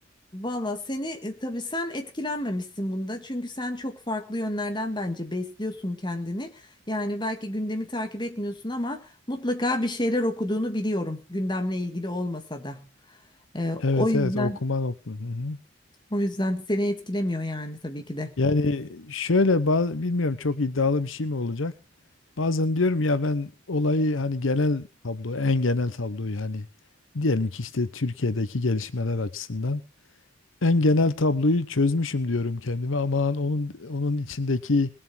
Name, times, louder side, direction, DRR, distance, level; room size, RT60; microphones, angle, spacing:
voice 1, 0.3-6.5 6.9-12.9 13.5-14.6 16.1-18.3, left 1 dB, 25° left, 2.0 m, -29 dB
voice 2, 13.8-15.6 18.4-21.7 22.4-26.7 27.1-29.8 30.6-34.9, left 3 dB, 85° left, 0.9 m, -25 dB
20.0 x 7.5 x 6.2 m
head